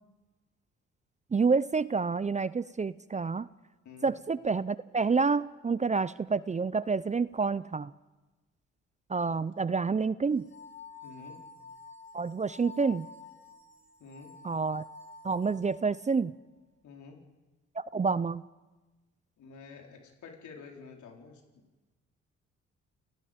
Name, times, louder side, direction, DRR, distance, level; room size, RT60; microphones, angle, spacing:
voice 1, 1.3-3.5 4.0-7.9 9.1-10.5 12.1-13.1 14.4-14.8 15.2-16.3 17.8-18.4, right 4 dB, 25° right, 18 dB, 0.6 m, -28 dB
sound 1, 10.3-16.2, left 4 dB, 40° left, 5.7 m, -49 dB
voice 2, 11.0-11.4 14.0-14.3 16.8-17.2 19.4-21.6, left 5 dB, 70° left, 1 dB, 4.3 m, -49 dB
30.0 x 18.0 x 5.2 m, 1.2 s
supercardioid pair, 60°, 31 cm